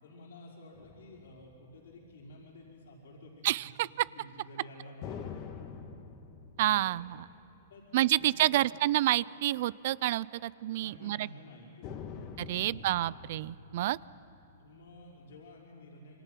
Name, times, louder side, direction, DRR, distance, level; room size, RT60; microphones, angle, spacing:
voice 1, 0.0-5.7 6.7-6.8 7.7-8.6 10.8-13.2 14.6-16.2, left 1 dB, 75° left, -3 dB, 5.2 m, -52 dB
sound 1, 0.7-2.6 5.0-8.7 9.1-9.2 11.8-15.5, left 6 dB, 40° left, 2.0 m, -47 dB
voice 2, 3.4-3.9 6.6-7.1 7.9-11.3 12.4-14.0, right 15 dB, 60° right, 22 dB, 0.5 m, -29 dB
27.0 x 25.5 x 5.9 m, 2.7 s
hypercardioid pair, 125°, 0 cm